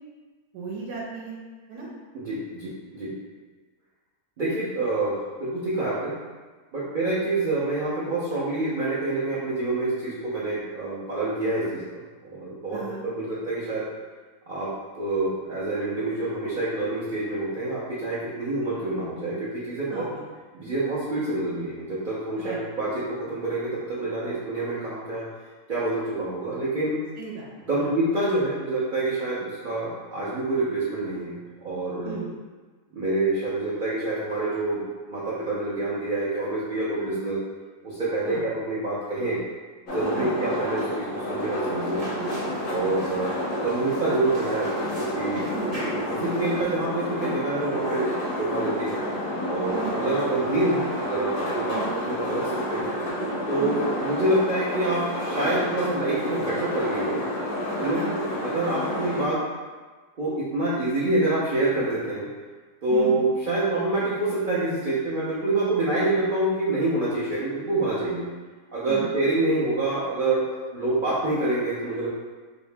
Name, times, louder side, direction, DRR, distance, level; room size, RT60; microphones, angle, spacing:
voice 1, 0.5-1.4 1.7-1.9 12.7-13.0 19.9-20.2 22.4-22.6 27.2-27.5 27.8-27.9 29.4-29.5 32.0-32.3 38.3-38.5 40.1-40.3 42.1-42.3 42.8-43.0 45.5-45.8 49.7-50.0 51.7-51.9 53.6-53.8 57.9-58.1 62.9-63.2 68.8-69.1, right 5 dB, 90° right, -3 dB, 1.2 m, -35 dB
voice 2, 2.1-3.1 4.4-6.1 6.7-12.8 13.2-13.8 14.5-14.7 15.0-20.0 20.5-25.2 25.7-27.0 27.7-31.3 31.6-32.2 32.9-34.8 35.1-37.4 37.8-39.4 39.9-42.0 42.7-43.3 43.6-45.4 46.1-48.1 48.4-49.0 49.5-51.8 52.1-52.9 53.5-57.2 57.8-59.4 60.2-62.3 62.8-68.3 68.7-72.1, right 2 dB, 65° right, -9 dB, 0.4 m, -27 dB
sound 1, 39.9-59.3, equal, 65° left, 0.8 m, -29 dB
sound 2, 41.8-46.9, equal, 30° right, 0.8 m, -41 dB
2.8 x 2.7 x 3.3 m, 1.4 s
omnidirectional pair, 1.7 m